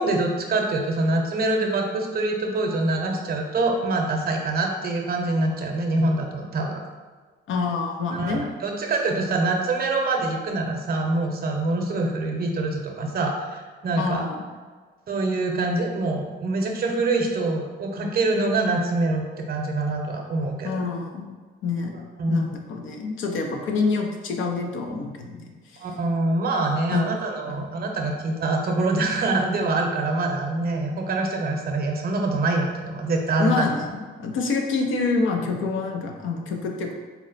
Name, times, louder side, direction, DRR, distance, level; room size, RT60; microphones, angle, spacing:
voice 1, 0.0-6.8 8.1-14.2 15.1-20.7 22.2-22.5 25.8-33.7, right 2 dB, 45° right, 2 dB, 0.7 m, -25 dB
voice 2, 7.5-8.4 14.0-14.5 20.6-21.3 21.6-21.9 22.3-25.9 26.9-27.1 27.6-27.7 33.4-37.0, left 4 dB, 70° left, 2 dB, 0.6 m, -27 dB
4.3 x 2.0 x 4.0 m, 1.4 s
cardioid pair, 85°, 21 cm